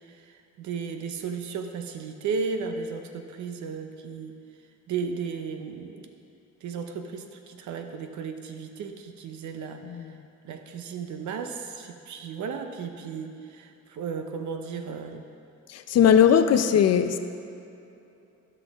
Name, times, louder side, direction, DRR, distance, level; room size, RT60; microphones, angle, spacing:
voice 1, 0.1-4.4 4.9-6.1 6.6-9.8 10.4-15.2, right 5 dB, 75° right, 6 dB, 0.8 m, -34 dB
voice 2, 9.8-10.2 15.7-17.2, left 8 dB, 55° left, 9 dB, 0.6 m, -20 dB
12.5 x 5.8 x 3.5 m, 2.8 s
cardioid pair, 90°, 30 cm